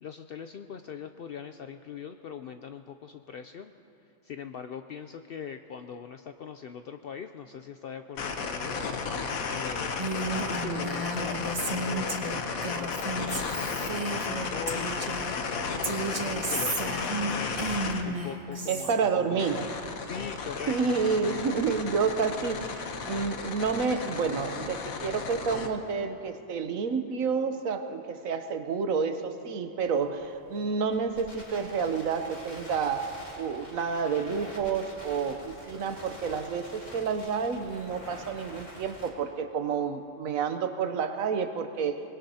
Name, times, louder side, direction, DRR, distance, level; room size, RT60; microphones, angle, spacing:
voice 1, 0.0-3.7 4.0-9.1 9.5-10.0 10.3-15.7 16.0-17.6 18.0-21.0 21.3-21.8, left 7 dB, 65° left, 7 dB, 0.6 m, -41 dB
sound 1, 8.2-18.0 19.4-25.7, left 5 dB, 90° left, 1.4 m, -34 dB
Female speech woman speaking, 10.0-15.4 15.8-18.9, right 2 dB, 30° right, 1.0 m, -33 dB
voice 2, 18.7-19.6 20.7-22.6 23.0-42.0, right 5 dB, 80° right, 8 dB, 1.3 m, -29 dB
Crackle, 29.8-39.1, left 1 dB, 30° left, 2.1 m, -47 dB
24.0 x 20.5 x 2.8 m, 2.7 s
omnidirectional pair, 1.4 m